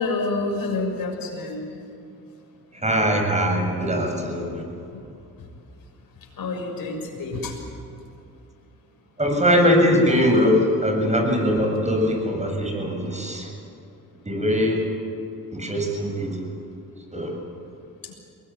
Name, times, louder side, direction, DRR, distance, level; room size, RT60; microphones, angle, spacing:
voice 1, 0.0-1.7 6.4-7.5 18.0-18.1, left 3 dB, 60° left, 1 dB, 6.5 m, -28 dB
voice 2, 2.7-4.6 9.2-13.5 14.2-14.8 15.5-16.4 17.1-17.4, equal, 20° right, 2 dB, 7.6 m, -21 dB
23.0 x 19.5 x 9.4 m, 2.5 s
cardioid pair, 70°, 38 cm